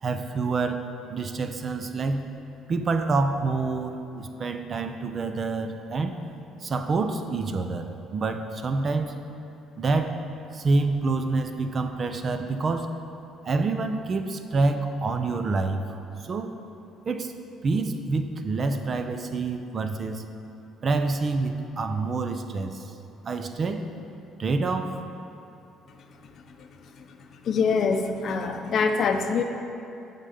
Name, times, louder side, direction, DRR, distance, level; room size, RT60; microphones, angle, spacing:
voice 1, 0.0-0.8 1.1-2.3 2.7-6.2 6.6-9.2 9.8-10.2 10.5-12.9 13.4-15.8 16.2-16.5 17.1-17.3 17.6-20.2 20.8-22.9 23.2-23.8 24.4-25.0, right 3 dB, 40° right, 8 dB, 0.5 m, -27 dB
voice 2, 27.4-29.4, left 5 dB, 55° left, 6 dB, 0.6 m, -24 dB
9.0 x 3.7 x 6.9 m, 2.7 s
cardioid pair, 105°, 0 cm